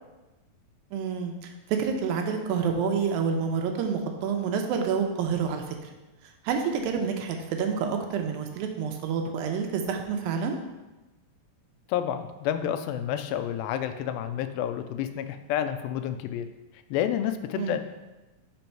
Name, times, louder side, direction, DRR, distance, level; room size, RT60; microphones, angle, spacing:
voice 1, 0.9-5.9 6.4-10.6 17.5-17.8, right 6 dB, 85° right, 4 dB, 2.5 m, -28 dB
voice 2, 11.9-16.5 16.9-17.8, left 10 dB, 90° left, 9 dB, 2.4 m, -29 dB
6.0 x 5.4 x 4.5 m, 1.1 s
omnidirectional pair, 4.1 m